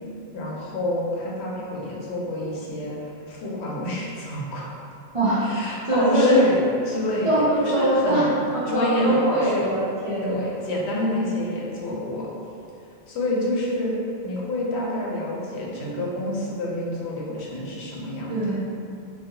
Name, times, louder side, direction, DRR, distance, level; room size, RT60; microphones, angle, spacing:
voice 1, 0.3-4.7 5.4-8.4 8.7-9.7 10.2-12.3 13.1-13.9 14.2-18.6, left 1 dB, 85° left, -4 dB, 0.9 m, -28 dB
voice 2, 5.1-6.4 7.2-7.4 7.7-8.3 8.5-10.4 18.3-18.6, right 1 dB, 50° right, -11 dB, 0.4 m, -22 dB
2.6 x 2.2 x 2.6 m, 2.5 s
omnidirectional pair, 1.1 m